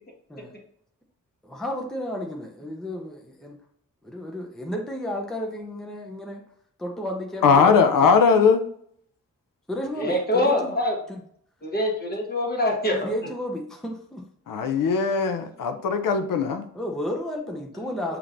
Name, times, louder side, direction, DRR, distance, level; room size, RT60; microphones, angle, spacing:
voice 1, 1.4-3.6 4.0-6.4 6.8-8.1 9.7-10.7 11.1-11.2 12.9-14.2 16.7-18.2, left 1 dB, ahead, 1 dB, 0.5 m, -32 dB
voice 2, 7.4-8.6 14.5-16.7, left 5 dB, 90° left, 7 dB, 0.6 m, -19 dB
voice 3, 10.0-10.9 11.6-13.1, left 1 dB, 30° left, 0 dB, 1.2 m, -24 dB
6.9 x 2.9 x 2.5 m, 0.66 s
wide cardioid pair, 175°, 32 cm